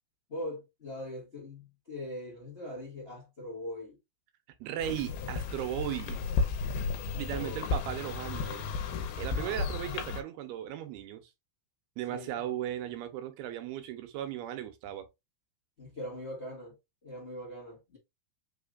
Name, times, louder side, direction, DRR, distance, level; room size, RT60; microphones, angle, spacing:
voice 1, 0.3-4.0 7.1-7.8 9.1-9.7 12.1-12.3 15.8-16.8 17.0-18.0, left 1 dB, 65° left, 0.6 m, -41 dB
voice 2, 4.6-6.2 7.2-8.7 9.2-11.3 12.0-15.1, right 11 dB, 85° right, 2.7 m, -37 dB
sound 1, 4.8-10.2, left 4 dB, 85° left, 2.6 m, -33 dB
5.8 x 3.2 x 2.4 m
omnidirectional pair, 4.5 m